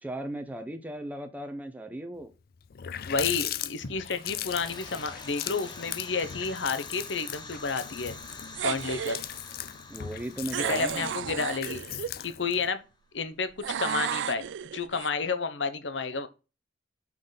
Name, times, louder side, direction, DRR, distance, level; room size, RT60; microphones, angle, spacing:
voice 1, 0.0-2.3 9.9-11.1, right 1 dB, 10° right, 0.8 m, -37 dB
Water tap faucet, 2.3-2.4 2.6-12.7, left 11 dB, 55° left, 0.4 m, -39 dB
voice 2, 3.0-8.2 8.6-9.2 10.5-11.8 12.2-12.8 13.1-14.4 14.7-16.3, left 4 dB, 75° left, 0.9 m, -31 dB
sound 1, 4.2-12.7, left 3 dB, 25° left, 1.3 m, -47 dB
sound 2, 8.5-9.2 10.5-12.1 13.6-15.1, right 8 dB, 80° right, 0.4 m, -33 dB
6.0 x 5.1 x 3.9 m
head